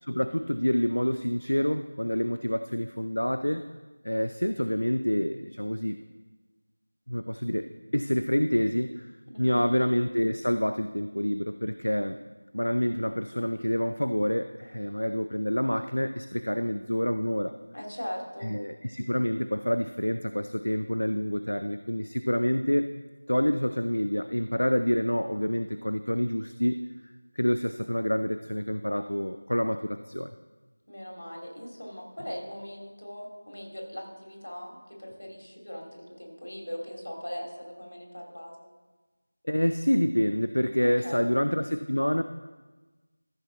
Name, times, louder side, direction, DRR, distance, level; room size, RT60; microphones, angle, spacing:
voice 1, 0.0-3.6 4.0-6.0 7.1-9.1 9.4-12.2 12.5-17.6 18.4-22.9 23.3-26.8 27.4-30.3 39.4-42.2, equal, 90° left, 9 dB, 0.4 m, -27 dB
voice 2, 9.3-9.7 17.7-18.6 30.9-38.7 40.8-41.2, equal, 70° left, 0 dB, 2.6 m, -40 dB
14.0 x 6.1 x 3.9 m, 1.2 s
figure-of-eight pair, 175°, 0 cm